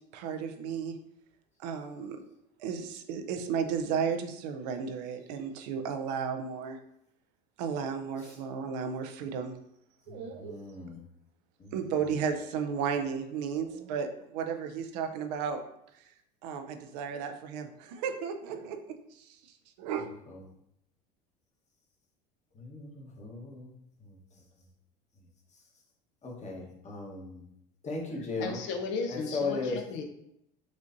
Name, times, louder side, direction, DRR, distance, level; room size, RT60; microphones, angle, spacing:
voice 1, 0.1-1.0 1.6-2.2 2.6-6.8 7.6-9.6 10.1-10.6 11.7-15.6 16.4-19.4 19.8-20.1, right 6 dB, 75° right, 6 dB, 0.6 m, -34 dB
voice 2, 10.1-11.0 11.6-11.7 20.3-20.4 22.5-23.7 24.0-24.2 26.2-27.4 27.8-28.6 29.1-29.8, left 3 dB, 35° left, -1 dB, 1.2 m, -37 dB
voice 3, 28.2-30.0, left 4 dB, 60° left, 4 dB, 0.8 m, -35 dB
6.4 x 2.5 x 2.6 m, 0.77 s
supercardioid pair, 90°, 21 cm